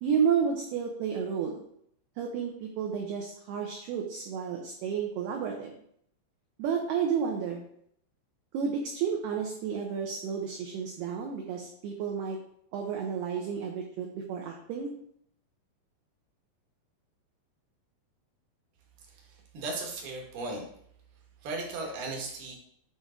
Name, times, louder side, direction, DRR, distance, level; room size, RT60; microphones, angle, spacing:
voice 1, 0.0-1.6 2.2-5.7 6.6-7.6 8.5-12.4 12.7-14.9, right 7 dB, 80° right, 1 dB, 2.3 m, -31 dB
voice 2, 19.1-20.6 21.4-22.5, right 2 dB, 65° right, 1 dB, 2.8 m, -36 dB
8.9 x 3.3 x 4.9 m, 0.68 s
omnidirectional pair, 5.6 m